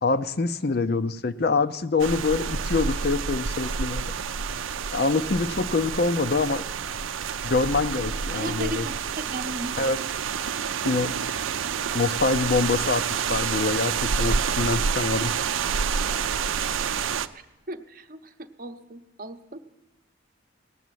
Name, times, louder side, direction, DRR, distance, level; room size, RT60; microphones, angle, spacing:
voice 1, 0.0-4.1 4.9-6.6 7.4-8.8 9.8-10.0 10.8-11.2 11.9-15.4, left 3 dB, 50° left, 13 dB, 0.6 m, -25 dB
sound 1, 2.0-17.3, right 6 dB, 85° right, 0.5 m, -28 dB
voice 2, 8.3-9.0 9.3-9.8 10.9-11.1 12.2-12.4 17.7-19.7, right 1 dB, 45° right, 8 dB, 0.8 m, -36 dB
18.0 x 7.2 x 9.2 m, 1.1 s
head